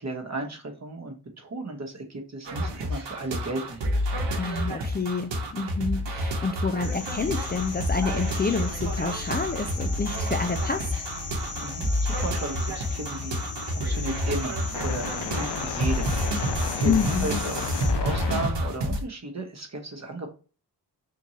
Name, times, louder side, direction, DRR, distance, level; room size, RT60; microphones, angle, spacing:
voice 1, 0.0-3.8 11.6-20.3, right 2 dB, 40° right, 3 dB, 1.1 m, -35 dB
sound 1, 2.4-19.0, equal, 80° right, 0.9 m, -29 dB
voice 2, 4.4-10.9 16.8-17.3, left 4 dB, 25° left, 5 dB, 0.4 m, -28 dB
sound 2, 6.8-17.9, left 4 dB, 45° left, 1.1 m, -39 dB
sound 3, 7.0-18.5, left 5 dB, 70° left, 0.6 m, -36 dB
3.7 x 2.6 x 3.0 m, 0.36 s
cardioid pair, 60°, 43 cm